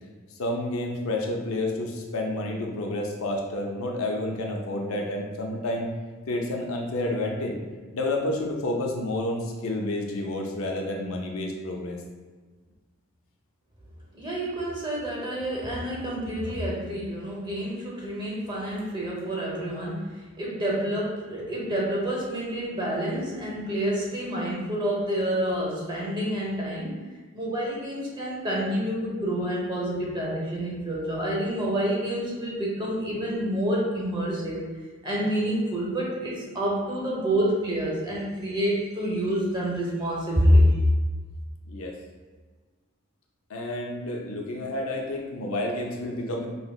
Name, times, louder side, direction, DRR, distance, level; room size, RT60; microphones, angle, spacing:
voice 1, 0.4-5.9 6.3-7.6 7.9-12.0 41.7-41.9 43.5-46.5, left 1 dB, 75° left, 1 dB, 0.5 m, -30 dB
voice 2, 14.2-27.0 27.3-34.7 35.0-40.7, equal, 20° right, -4 dB, 0.8 m, -27 dB
5.4 x 2.0 x 2.3 m, 1.4 s
head